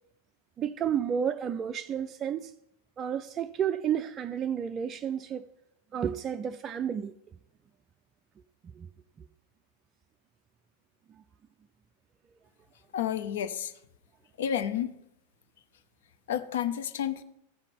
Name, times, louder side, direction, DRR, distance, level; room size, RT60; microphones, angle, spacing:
voice 1, 0.6-2.5 3.0-5.5 5.9-7.1 8.8-8.9, right 8 dB, 25° right, 0.4 m, -31 dB
voice 2, 12.9-13.7 14.4-14.9 16.3-17.2, left 9 dB, 60° left, 0.7 m, -30 dB
15.0 x 5.7 x 5.3 m
figure-of-eight pair, 90°, 0 cm